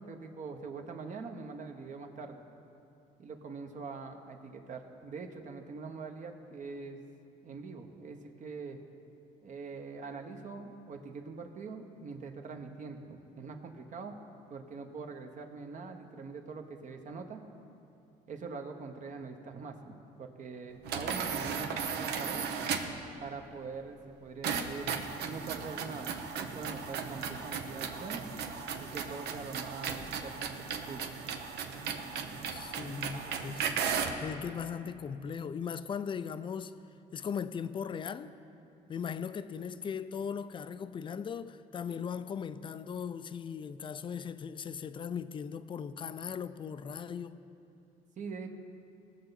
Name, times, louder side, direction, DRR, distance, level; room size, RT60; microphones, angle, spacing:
voice 1, 0.0-2.4 3.2-7.0 7.4-8.8 9.4-14.2 14.5-17.4 18.3-22.4 23.2-25.0 25.2-28.2 28.8-30.5 30.8-31.1 32.8-33.1 48.2-48.5, right 4 dB, 45° right, 1.1 m, -43 dB
sound 1, 20.8-23.0 24.4-34.2, right 6 dB, 80° right, 0.9 m, -36 dB
voice 2, 32.5-33.9 34.2-36.7 37.1-38.3 38.9-47.4, left 7 dB, 30° left, 0.4 m, -38 dB
19.5 x 6.7 x 4.1 m
cardioid pair, 110°, 17 cm